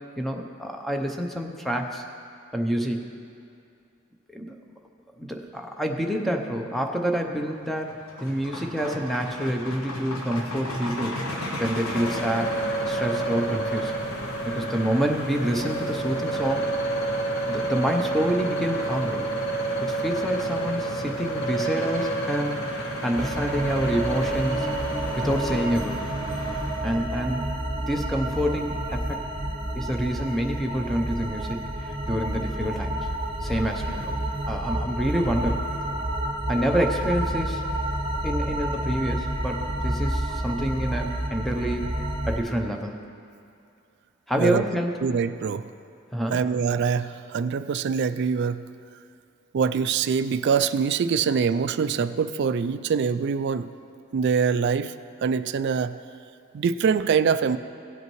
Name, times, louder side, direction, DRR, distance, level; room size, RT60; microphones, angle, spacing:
voice 1, 0.2-2.0 2.5-3.0 4.3-4.6 5.2-11.2 11.6-12.6 12.9-14.0 14.5-16.7 17.5-19.3 19.8-24.7 25.1-26.0 26.8-27.5 27.9-29.2 29.7-33.0 33.4-34.2 34.5-35.6 36.5-37.7 38.2-42.0 42.3-43.1 44.3-45.0 46.1-46.4, equal, ahead, 2 dB, 0.6 m, -27 dB
sound 1, 7.6-27.0, left 1 dB, 85° left, 1.1 m, -36 dB
sound 2, 11.8-25.7, right 2 dB, 50° left, 0.9 m, -29 dB
sound 3, 23.1-42.4, right 1 dB, 25° right, 0.9 m, -30 dB
voice 2, 45.0-45.7 46.3-48.7 49.5-53.7 54.1-54.9 55.2-56.0 56.5-57.6, right 6 dB, 55° right, 12 dB, 0.3 m, -24 dB
17.0 x 8.2 x 3.1 m, 2.5 s
head